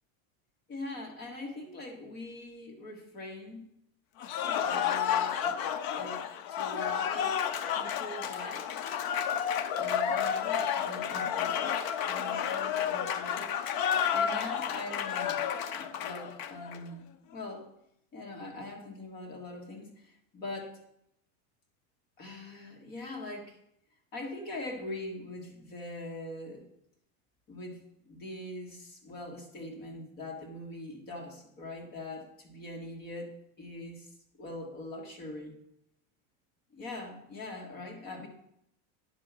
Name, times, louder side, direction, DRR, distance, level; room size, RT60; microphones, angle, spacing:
voice 1, 0.7-3.7 4.6-5.6 5.9-6.2 6.5-7.3 7.8-8.7 9.8-11.8 12.1-13.5 14.1-15.4 15.7-17.7 18.1-20.8 22.2-23.6 24.1-26.7 27.5-27.8 28.0-34.1 34.4-35.6 36.7-38.3, left 2 dB, 25° left, 1 dB, 1.5 m, -42 dB
Cheering / Applause, 4.2-16.8, left 8 dB, 40° left, 0.5 m, -31 dB
9.9 x 4.6 x 6.0 m, 0.75 s
cardioid pair, 180°, 35 cm